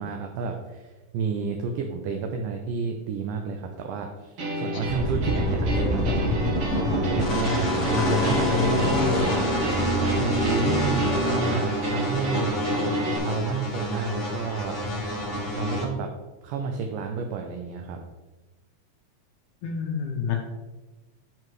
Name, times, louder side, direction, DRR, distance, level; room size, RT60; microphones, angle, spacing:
voice 1, 0.0-6.2 7.1-12.6 13.2-14.8 15.5-16.1 16.4-18.0, right 5 dB, 80° right, 3 dB, 2.1 m, -31 dB
sound 1, 4.4-13.2, right 1 dB, 60° right, 1.5 m, -32 dB
sound 2, 4.9-15.8, equal, 40° left, 1.0 m, -26 dB
voice 2, 8.0-9.1 19.6-20.4, left 5 dB, 75° left, 2 dB, 2.0 m, -28 dB
10.5 x 4.8 x 3.1 m, 1.2 s
omnidirectional pair, 4.1 m